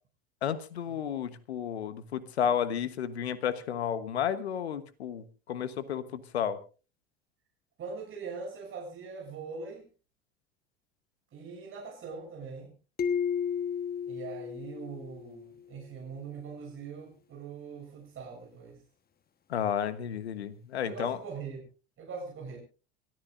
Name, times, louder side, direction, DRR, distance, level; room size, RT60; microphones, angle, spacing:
voice 1, 0.4-6.6 19.5-21.2, left 8 dB, 85° left, 14 dB, 1.2 m, -32 dB
voice 2, 7.8-9.8 11.3-12.7 14.1-18.8 20.8-21.6 22.0-22.6, right 5 dB, 40° right, -2 dB, 7.5 m, -42 dB
sound 1, 13.0-15.5, left 7 dB, 30° left, 1.4 m, -33 dB
28.5 x 13.5 x 2.6 m, 0.35 s
hypercardioid pair, 75°, 31 cm